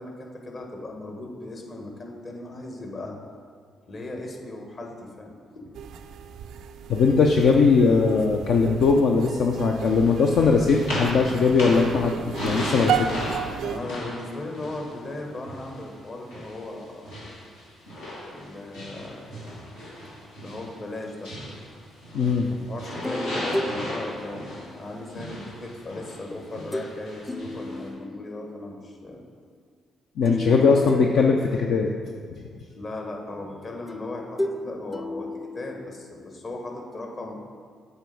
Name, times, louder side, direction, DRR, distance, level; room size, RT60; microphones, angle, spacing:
voice 1, 0.0-3.2 3.9-5.7 13.6-17.1 18.2-19.3 20.3-21.3 22.5-29.2 30.2-31.1 32.7-35.3 35.5-37.3, left 2 dB, 50° left, 1 dB, 1.4 m, -37 dB
sound 1, 5.7-13.8, right 8 dB, 75° right, 0.4 m, -33 dB
voice 2, 6.9-13.3 22.1-22.5 30.2-31.9, left 4 dB, 70° left, 1 dB, 0.5 m, -20 dB
sound 2, 9.8-15.9 16.3-22.5 22.8-27.9, left 1 dB, 90° left, 1.7 m, -36 dB
sound 3, 23.0-25.3 26.7-27.0 27.3-28.6 30.3-32.0 33.9-36.2, left 1 dB, 15° left, 0.5 m, -34 dB
8.1 x 3.5 x 5.2 m, 2.1 s
hypercardioid pair, 45°, 0 cm